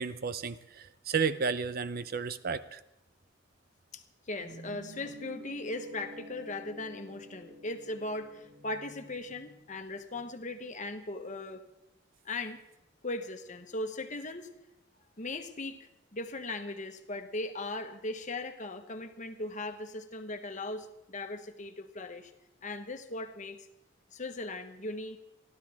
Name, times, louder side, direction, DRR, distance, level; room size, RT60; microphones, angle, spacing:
voice 1, 0.0-2.8, right 5 dB, 50° right, 14 dB, 0.6 m, -32 dB
voice 2, 3.9-11.6 12.2-12.6 13.0-14.5 15.2-22.3 22.6-23.7 24.1-25.2, left 2 dB, 40° left, 7 dB, 1.3 m, -38 dB
Guitar, 4.4-9.5, equal, 90° right, 1.5 m, -49 dB
29.0 x 12.0 x 3.5 m, 0.86 s
head